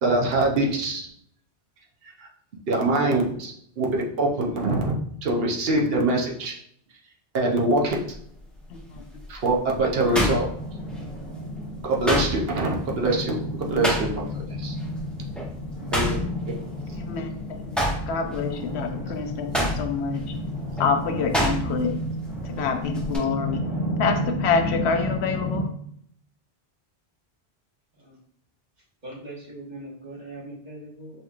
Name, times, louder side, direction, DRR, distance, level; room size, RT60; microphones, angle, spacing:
voice 1, 0.0-1.1 2.7-5.0 5.2-6.5 7.3-8.0 9.3-10.5 11.8-14.3 14.6-14.7 15.9-16.2 16.5-16.6, right 2 dB, 70° right, -1 dB, 0.9 m, -24 dB
sound 1, 8.1-8.2 8.8-11.3 11.5-14.5 14.8-15.0 15.3-17.3 17.6-22.0 22.2-23.2, equal, ahead, 0.8 m, -28 dB
sound 2, 9.8-25.6, left 1 dB, 50° left, 1.5 m, -32 dB
voice 2, 17.7-19.5 19.8-20.2 20.8-21.9 22.6-23.6 24.0-25.7, left 5 dB, 85° left, 5 dB, 0.9 m, -26 dB
voice 3, 29.0-31.1, right 1 dB, 45° right, -5 dB, 1.4 m, -40 dB
5.5 x 2.9 x 2.4 m, 0.67 s
omnidirectional pair, 1.1 m